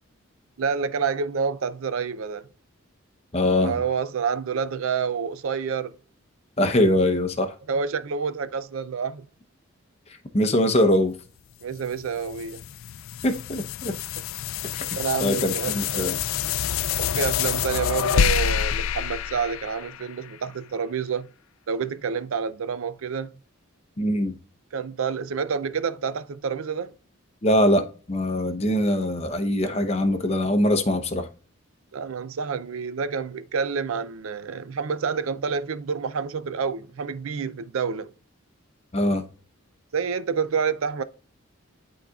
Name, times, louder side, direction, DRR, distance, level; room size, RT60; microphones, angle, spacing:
voice 1, 0.6-2.5 3.6-5.9 7.7-9.3 11.6-12.6 14.9-16.2 17.0-21.3 21.7-23.3 24.7-26.9 31.9-38.1 39.9-41.0, right 6 dB, 75° right, 0.5 m, -28 dB
voice 2, 3.3-3.8 6.6-7.5 10.3-11.1 13.2-13.9 14.7-14.8 15.2-16.1 24.0-24.4 27.4-31.3 38.9-39.2, left 1 dB, 30° left, 0.8 m, -22 dB
sound 1, 11.7-20.3, left 8 dB, 75° left, 0.4 m, -27 dB
11.5 x 3.9 x 2.3 m
head